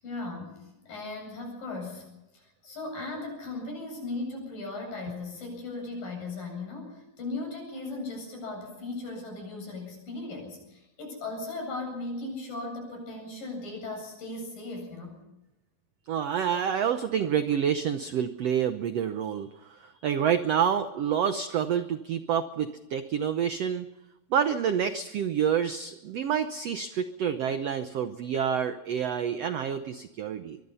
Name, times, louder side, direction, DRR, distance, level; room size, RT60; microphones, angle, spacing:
voice 1, 0.0-2.1 2.3-15.2, left 2 dB, 65° left, 2 dB, 9.7 m, -37 dB
voice 2, 16.1-23.9 24.3-30.6, right 8 dB, 80° right, 9 dB, 1.4 m, -28 dB
23.5 x 23.0 x 5.6 m, 0.93 s
omnidirectional pair, 4.2 m